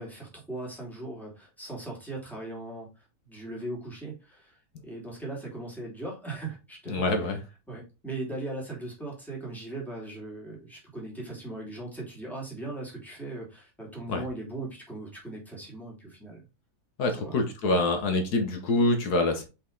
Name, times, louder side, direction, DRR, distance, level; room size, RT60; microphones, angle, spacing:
voice 1, 0.0-7.3 7.7-16.4 17.2-17.4, right 2 dB, ahead, 3.1 m, -39 dB
voice 2, 6.9-7.4 14.1-14.2 17.0-19.4, left 2 dB, 85° left, 1.9 m, -25 dB
5.4 x 5.4 x 4.0 m
omnidirectional pair, 1.6 m